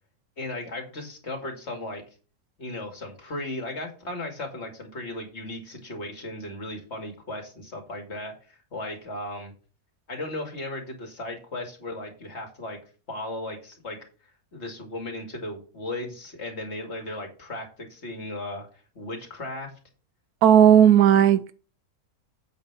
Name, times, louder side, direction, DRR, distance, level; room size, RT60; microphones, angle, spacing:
voice 1, 0.4-2.0 2.6-9.5 10.1-12.8 13.1-14.0 14.5-18.7 18.9-19.7, left 1 dB, 45° left, 2.6 m, -36 dB
voice 2, 20.4-21.5, right 9 dB, 80° right, 1.1 m, -15 dB
8.2 x 5.2 x 6.0 m
omnidirectional pair, 1.6 m